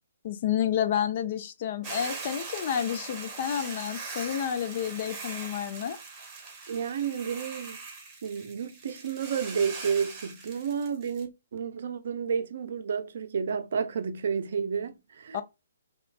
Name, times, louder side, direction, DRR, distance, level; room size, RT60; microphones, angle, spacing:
voice 1, 0.2-6.0 15.3-15.4, left 9 dB, 40° left, 0.5 m, -30 dB
Hiss / Boiling, 1.8-11.2, right 4 dB, 20° right, 1.1 m, -41 dB
voice 2, 6.7-7.8 8.2-15.4, right 6 dB, 50° right, 0.6 m, -31 dB
3.1 x 3.0 x 2.4 m
figure-of-eight pair, 130°, 0 cm